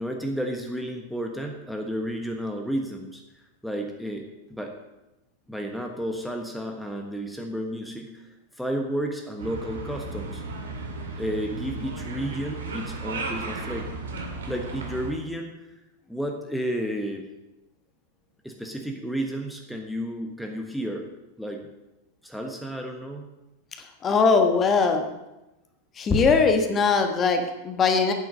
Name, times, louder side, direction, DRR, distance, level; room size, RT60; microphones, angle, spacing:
voice 1, 0.0-4.8 5.5-10.4 11.2-13.9 14.5-15.7 16.1-17.3 18.4-21.1 21.4-21.7 22.2-23.3, equal, ahead, 2 dB, 1.3 m, -32 dB
sound 1, 9.4-15.1, right 3 dB, 65° right, 2.3 m, -35 dB
voice 2, 24.0-25.1 26.0-28.1, left 4 dB, 25° left, 5 dB, 1.4 m, -20 dB
9.2 x 7.7 x 7.4 m, 0.98 s
figure-of-eight pair, 90°, 0 cm